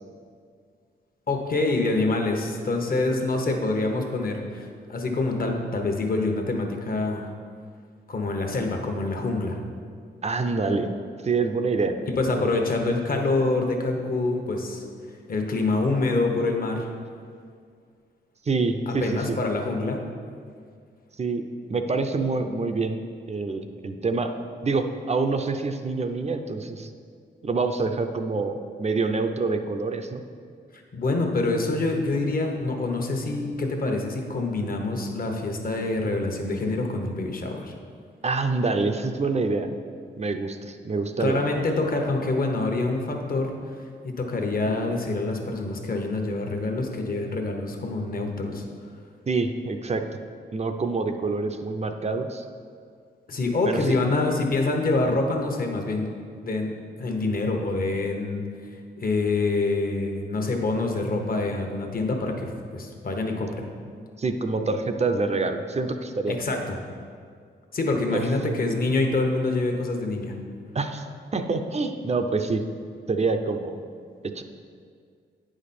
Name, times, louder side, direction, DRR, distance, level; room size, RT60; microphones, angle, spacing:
voice 1, 1.3-7.3 8.1-9.6 12.1-14.8 15.3-16.9 18.9-20.0 30.7-37.7 41.2-43.5 44.0-48.6 53.3-56.1 56.3-58.4 59.0-63.7 66.3-66.8 67.7-70.3, left 2 dB, 50° left, 3 dB, 1.1 m, -26 dB
voice 2, 10.2-10.9 11.2-11.9 12.3-12.5 18.5-19.4 21.2-23.0 23.3-24.3 24.6-26.9 27.4-30.2 38.2-39.7 40.2-41.4 49.3-50.1 50.5-52.4 53.7-53.9 64.2-66.4 68.1-68.2 70.7-71.0 71.3-72.6 73.1-73.8 74.3-74.4, right 3 dB, 35° right, 7 dB, 0.6 m, -26 dB
9.1 x 5.1 x 4.3 m, 2.2 s
cardioid pair, 75°, 19 cm